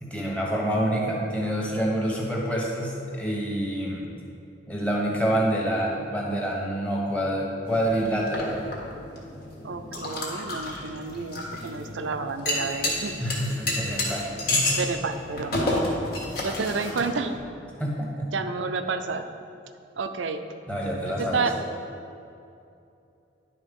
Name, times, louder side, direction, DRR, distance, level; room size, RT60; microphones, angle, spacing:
voice 1, 0.0-4.1 4.7-8.5 13.2-14.2 14.5-14.8 17.8-18.3 20.7-21.5, equal, 5° left, -4 dB, 1.2 m, -27 dB
sound 1, 7.7-17.4, left 1 dB, 55° left, 1.6 m, -31 dB
voice 2, 9.6-13.1 14.7-15.6 16.4-17.4 18.3-19.2 20.0-20.4 21.2-21.5, right 4 dB, 85° right, 8 dB, 0.5 m, -30 dB
11.0 x 4.0 x 5.3 m, 2.6 s
head